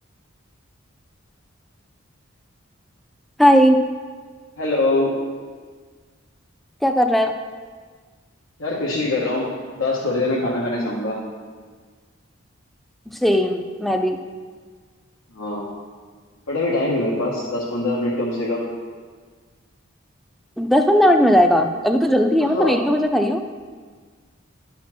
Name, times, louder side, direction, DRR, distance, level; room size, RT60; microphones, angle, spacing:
voice 1, 3.4-3.8 6.8-7.3 13.1-14.2 20.6-23.4, equal, ahead, 5 dB, 0.4 m, -17 dB
voice 2, 4.6-5.1 8.6-9.5 9.8-11.2 15.3-15.7 16.5-18.6 22.4-22.8, left 2 dB, 85° left, -6 dB, 1.4 m, -23 dB
11.0 x 4.3 x 5.9 m, 1.6 s
head